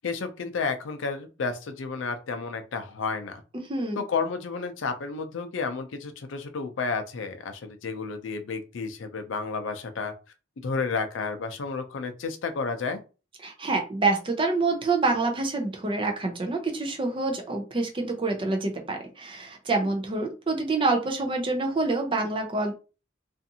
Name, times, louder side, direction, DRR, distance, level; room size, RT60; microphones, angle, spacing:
voice 1, 0.0-3.4 4.0-10.1 10.6-13.0, left 4 dB, 80° left, 8 dB, 0.5 m, -31 dB
voice 2, 3.5-4.0 13.4-22.7, right 3 dB, 25° right, 3 dB, 0.5 m, -27 dB
2.5 x 2.5 x 2.7 m, 0.33 s
head